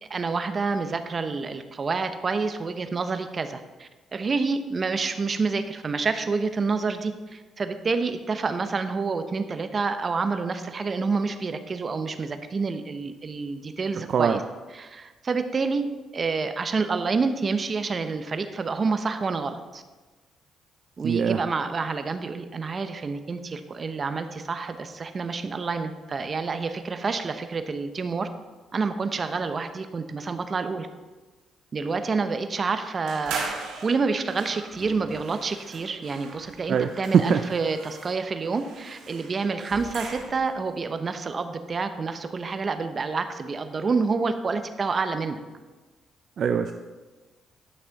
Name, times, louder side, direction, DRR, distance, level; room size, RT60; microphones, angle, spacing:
voice 1, 0.0-14.4 14.7-19.8 21.0-28.3 28.7-30.9 31.7-33.4 33.8-45.4, right 4 dB, 40° right, 9 dB, 0.8 m, -28 dB
voice 2, 21.0-21.4 36.7-36.9 37.1-37.4 46.4-46.7, right 7 dB, 60° right, 7 dB, 0.4 m, -21 dB
sound 1, 33.1-40.6, right 4 dB, 90° right, 1.6 m, -39 dB
11.0 x 6.1 x 4.0 m, 1.3 s
cardioid pair, 80°, 0 cm